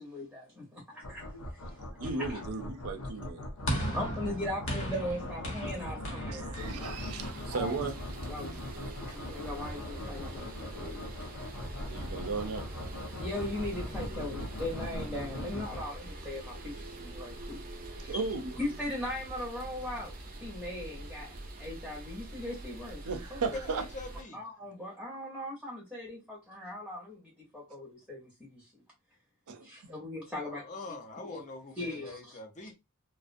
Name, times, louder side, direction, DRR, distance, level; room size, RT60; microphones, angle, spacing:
voice 1, 0.0-1.4 2.0-2.4 3.9-6.6 7.5-7.8 8.3-8.6 9.1-10.5 10.7-11.3 13.2-17.6 17.9-18.3 18.6-20.1 20.4-23.0 23.3-23.4 24.3-28.7 29.6-30.6 31.2-31.4 31.8-32.4, left 1 dB, ahead, 0.7 m, -39 dB
sound 1, 1.0-15.8, left 1 dB, 85° left, 0.5 m, -41 dB
voice 2, 1.9-3.4 3.7-4.1 5.6-7.9 11.8-12.7 18.1-18.6 23.0-23.9 29.5-29.9, right 4 dB, 90° right, 0.5 m, -36 dB
sound 2, 3.7-8.1, equal, 60° left, 0.9 m, -37 dB
sound 3, 6.6-24.2, right 1 dB, 40° right, 0.6 m, -44 dB
voice 3, 23.5-24.4 30.3-32.7, left 2 dB, 35° left, 0.5 m, -43 dB
2.4 x 2.0 x 2.5 m
head